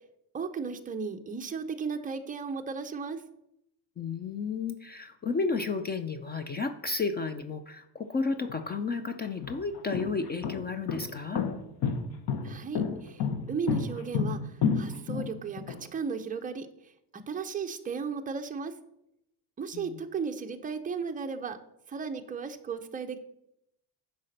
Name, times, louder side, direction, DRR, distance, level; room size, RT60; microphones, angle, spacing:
voice 1, 0.3-3.2 12.4-18.7 19.6-21.6 21.9-23.2, right 5 dB, 20° right, 6 dB, 0.6 m, -35 dB
voice 2, 4.0-11.4 19.7-20.0, left 4 dB, 25° left, 9 dB, 0.3 m, -32 dB
sound 1, 8.5-8.6 9.2-15.8, left 6 dB, 60° left, 1.2 m, -30 dB
9.9 x 4.1 x 6.5 m, 0.80 s
cardioid pair, 160°, 43 cm